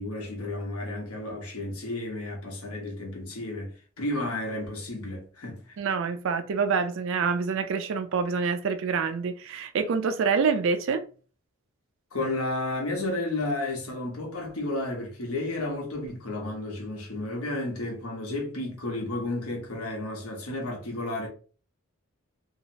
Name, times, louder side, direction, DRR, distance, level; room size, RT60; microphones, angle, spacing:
voice 1, 0.0-5.7 12.1-21.3, left 2 dB, 90° left, 1.0 m, -32 dB
voice 2, 5.8-11.0, right 5 dB, 60° right, 0.4 m, -26 dB
2.8 x 2.0 x 2.7 m
head